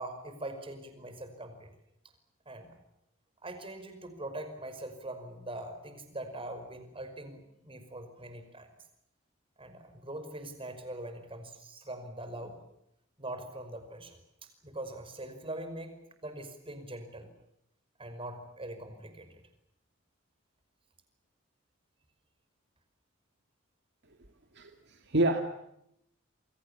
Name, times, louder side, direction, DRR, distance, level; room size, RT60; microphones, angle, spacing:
voice 1, 0.0-1.7 2.5-2.7 3.4-8.7 9.6-12.6 13.2-16.0 16.2-17.3 18.0-19.3, right 1 dB, 25° right, 5.3 m, -42 dB
voice 2, 24.5-25.4, right 1 dB, 60° right, 2.2 m, -28 dB
28.5 x 23.5 x 7.2 m
head